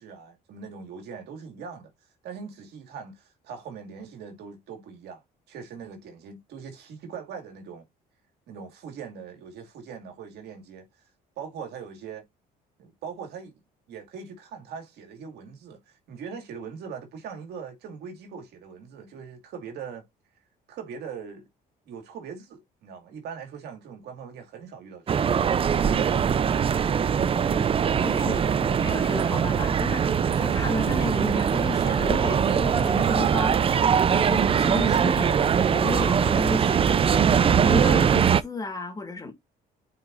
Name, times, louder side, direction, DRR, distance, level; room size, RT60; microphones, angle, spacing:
voice 1, 0.0-1.9 2.2-5.2 5.5-7.9 8.5-10.9 11.4-12.2 12.8-13.5 13.9-20.0 20.7-21.5 21.9-26.8, right 6 dB, 75° right, 2.3 m, -41 dB
sound 1, 25.1-38.4, right 7 dB, 35° right, 0.5 m, -22 dB
voice 2, 28.0-39.3, left 2 dB, 20° left, 2.4 m, -33 dB
9.1 x 4.9 x 2.6 m
cardioid pair, 110°, 17 cm